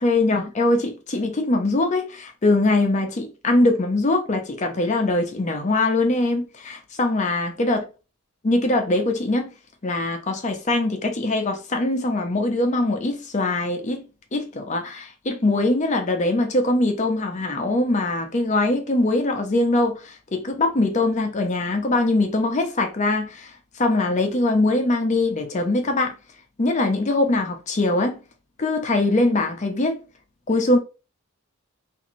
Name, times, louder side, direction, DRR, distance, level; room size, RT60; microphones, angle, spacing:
voice 1, 0.0-7.8 8.4-9.5 9.8-14.1 14.3-26.1 26.6-28.2 28.6-30.0 30.5-30.8, left 2 dB, 35° left, 0.5 m, -22 dB
3.7 x 2.5 x 3.0 m
head